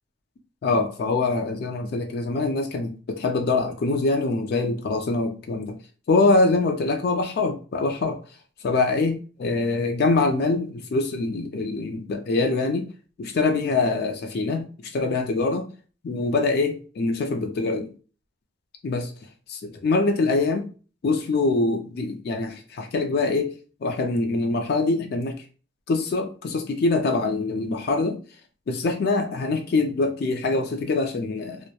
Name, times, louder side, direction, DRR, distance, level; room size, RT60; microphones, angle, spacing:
voice 1, 0.6-5.8 6.1-8.2 8.6-12.9 13.2-15.7 16.0-17.9 18.8-19.1 19.6-20.7 21.0-23.5 23.8-25.4 25.9-28.2 28.7-31.6, left 3 dB, 55° left, 5 dB, 0.3 m, -24 dB
2.2 x 2.1 x 2.8 m, 0.37 s
head